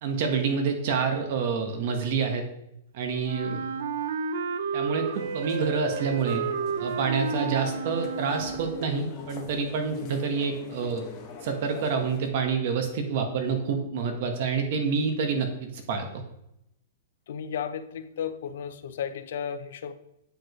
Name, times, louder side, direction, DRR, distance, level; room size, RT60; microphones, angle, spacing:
voice 1, 0.0-2.4 2.9-3.6 4.7-6.4 6.8-11.1 11.4-16.1, right 5 dB, 55° right, 4 dB, 1.4 m, -28 dB
Wind instrument woodwind instrument, 3.2-9.0, right 6 dB, 80° right, 0.5 m, -31 dB
sound 1, 5.1-12.3, left 5 dB, 30° left, 1.1 m, -43 dB
voice 2, 17.3-19.9, left 8 dB, 70° left, 11 dB, 0.6 m, -34 dB
8.7 x 5.1 x 3.2 m, 0.81 s
hypercardioid pair, 145°, 0 cm